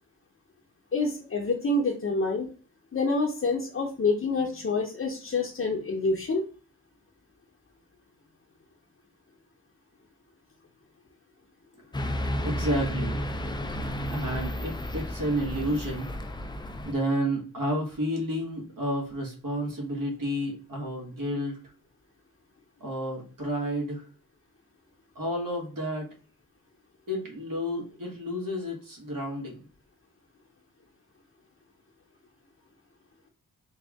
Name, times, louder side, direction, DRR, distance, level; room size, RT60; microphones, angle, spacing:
voice 1, 0.9-2.5 2.9-6.4, left 3 dB, 40° left, -1 dB, 0.7 m, -27 dB
sound 1, 11.9-16.9, equal, 15° left, 0.3 m, -32 dB
voice 2, 12.4-13.2 14.1-16.1 16.8-21.6 22.8-24.0 25.1-26.1 27.1-29.6, equal, 65° right, -1 dB, 1.5 m, -31 dB
3.4 x 2.4 x 3.5 m, 0.38 s
wide cardioid pair, 85°, 35 cm